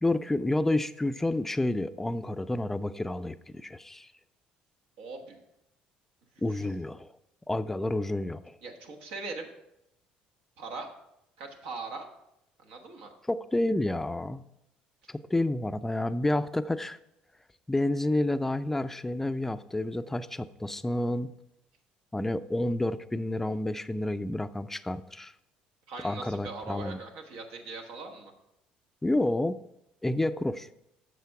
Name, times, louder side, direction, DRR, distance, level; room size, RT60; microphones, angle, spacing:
voice 1, 0.0-4.1 6.4-7.1 7.5-8.5 13.3-14.4 15.1-17.0 17.7-21.3 22.1-25.3 26.0-27.0 29.0-29.6 30.0-30.7, left 1 dB, 10° left, 13 dB, 0.4 m, -29 dB
voice 2, 5.0-5.4 6.5-6.7 8.6-9.5 10.6-10.9 11.4-12.1 12.6-13.1 25.9-28.3, right 3 dB, 80° right, 3 dB, 1.3 m, -40 dB
8.1 x 6.2 x 4.7 m, 0.83 s
supercardioid pair, 85°, 3 cm